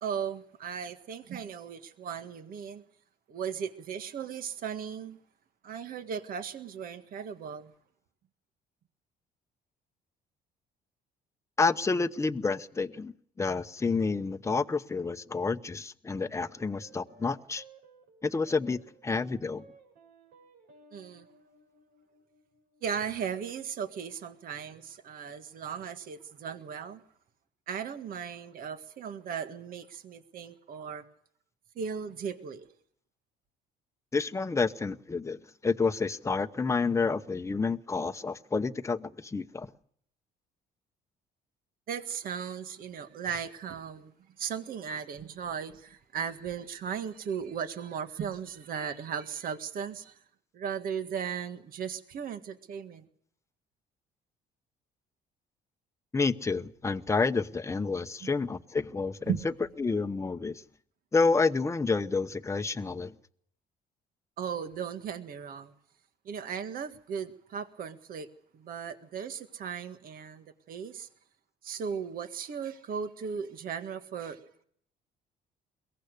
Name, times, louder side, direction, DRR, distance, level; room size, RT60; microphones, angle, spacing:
voice 1, 0.0-2.8 3.3-5.2 5.6-7.7 20.9-21.3 22.8-27.0 27.7-31.0 31.8-32.7 41.9-44.1 44.4-50.2 50.5-53.1 58.2-58.3 59.3-59.5 64.4-65.7 66.3-71.1 71.6-74.6, right 7 dB, 55° right, 1.8 m, -37 dB
voice 2, 11.6-17.6 18.2-19.6 34.1-39.7 56.1-59.3 59.8-60.6 61.1-63.1, left 4 dB, 15° left, 0.9 m, -29 dB
sound 1, 16.3-24.9, right 3 dB, 75° right, 7.4 m, -59 dB
22.5 x 18.0 x 6.6 m
cardioid pair, 110°, 17 cm